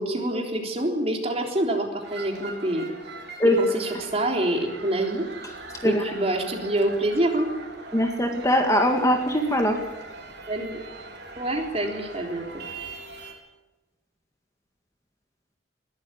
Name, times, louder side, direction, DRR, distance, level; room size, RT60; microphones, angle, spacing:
voice 1, 0.0-2.9 3.6-5.2 5.8-7.5 10.5-10.8 11.4-12.5, right 1 dB, 30° right, 2 dB, 3.6 m, -26 dB
sound 1, 2.0-13.3, right 3 dB, 60° right, 3.9 m, -41 dB
voice 2, 7.9-9.8, equal, 15° left, 4 dB, 1.8 m, -21 dB
21.5 x 13.0 x 9.7 m, 1.1 s
head